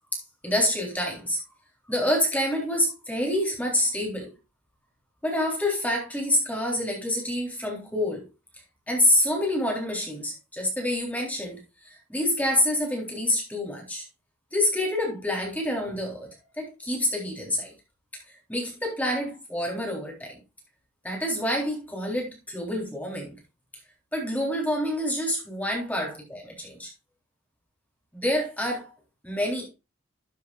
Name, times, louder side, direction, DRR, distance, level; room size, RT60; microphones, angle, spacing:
voice 1, 0.1-1.4 1.9-4.3 5.2-8.2 8.9-14.0 14.5-16.3 16.6-17.7 18.5-20.4 21.0-23.4 24.1-26.9 28.1-28.9 29.2-29.7, left 1 dB, 10° left, 3.6 m, -27 dB
12.5 x 7.7 x 2.4 m
head